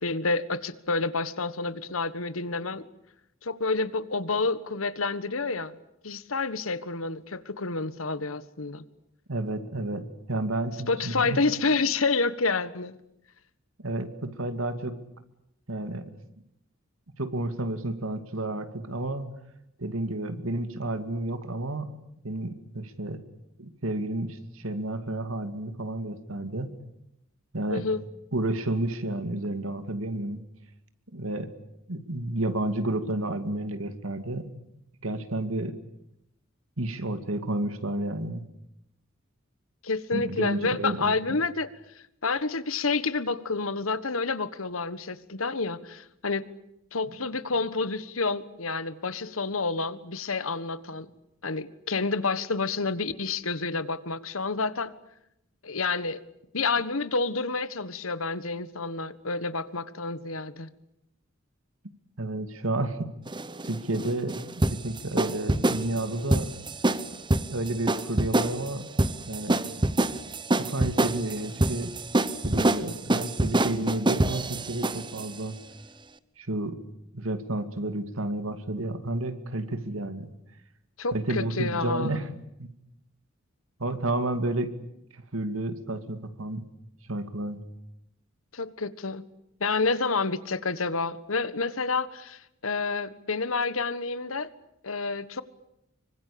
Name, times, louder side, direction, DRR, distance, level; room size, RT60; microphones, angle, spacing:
voice 1, 0.0-2.9 3.4-5.7 6.0-8.8 10.9-12.9 27.7-28.0 39.8-41.7 42.2-46.5 46.9-51.1 51.4-54.9 55.6-56.2 56.5-60.7 81.0-82.3 88.5-89.2 89.6-94.5 94.8-95.4, left 4 dB, 85° left, 15 dB, 1.5 m, -29 dB
voice 2, 9.3-11.4 13.8-14.9 15.7-16.2 17.2-19.3 19.8-21.9 22.2-23.2 23.6-26.7 27.5-27.9 28.3-30.4 31.1-31.5 31.9-34.5 35.0-35.8 36.8-38.4 40.1-41.1 62.2-63.1 63.6-64.4 64.7-66.5 67.5-68.8 69.3-69.6 70.6-71.9 72.4-75.6 76.4-76.8 77.1-80.3 81.1-82.3 82.6-82.7 83.8-84.7 85.1-86.7 87.1-87.6, right 1 dB, 80° right, 10 dB, 2.5 m, -31 dB
sound 1, 63.3-75.3, right 2 dB, 20° right, 1.0 m, -26 dB
25.5 x 24.5 x 8.7 m, 0.82 s
head